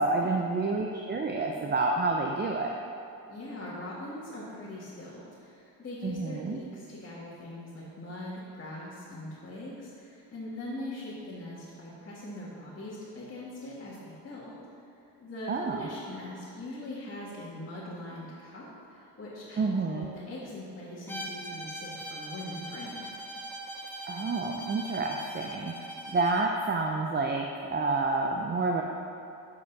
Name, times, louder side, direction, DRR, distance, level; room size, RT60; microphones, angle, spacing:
voice 1, 0.0-2.7 6.0-6.6 15.5-15.9 19.6-20.1 24.0-28.8, right 3 dB, 25° right, 1 dB, 0.6 m, -29 dB
voice 2, 3.3-14.6 15.2-23.1, left 1 dB, 35° left, -9 dB, 2.0 m, -41 dB
Bowed string instrument, 21.1-26.6, right 1 dB, 5° left, 0.8 m, -41 dB
8.1 x 5.3 x 5.4 m, 2.5 s
cardioid pair, 85°, 38 cm